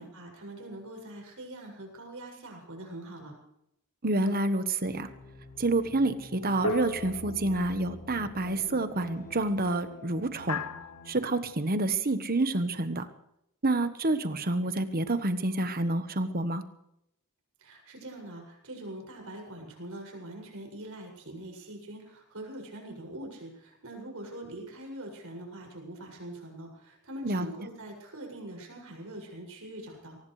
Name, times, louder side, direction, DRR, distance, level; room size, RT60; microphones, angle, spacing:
voice 1, 0.0-3.4 17.6-30.2, right 1 dB, 70° right, 0 dB, 6.9 m, -43 dB
voice 2, 4.0-5.1 5.6-10.6 11.1-13.1 13.6-16.6 27.2-27.5, right 2 dB, 40° right, 10 dB, 1.3 m, -28 dB
sound 1, 4.2-4.9 6.6-8.0 10.5-11.3, left 2 dB, 90° left, 0.9 m, -36 dB
sound 2, 4.8-11.1, left 2 dB, 50° left, 4.0 m, -47 dB
23.0 x 19.5 x 3.3 m, 0.78 s
head